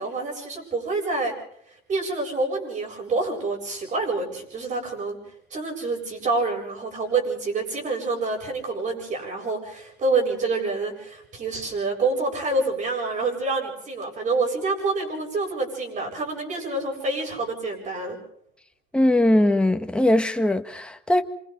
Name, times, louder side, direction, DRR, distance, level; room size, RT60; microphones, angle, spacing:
voice 1, 0.0-1.3 1.9-5.2 5.5-18.2, right 3 dB, 45° right, 7.7 m, -27 dB
voice 2, 18.9-21.2, left 1 dB, 5° left, 1.6 m, -20 dB
27.5 x 25.5 x 4.0 m
cardioid pair, 110°, 17 cm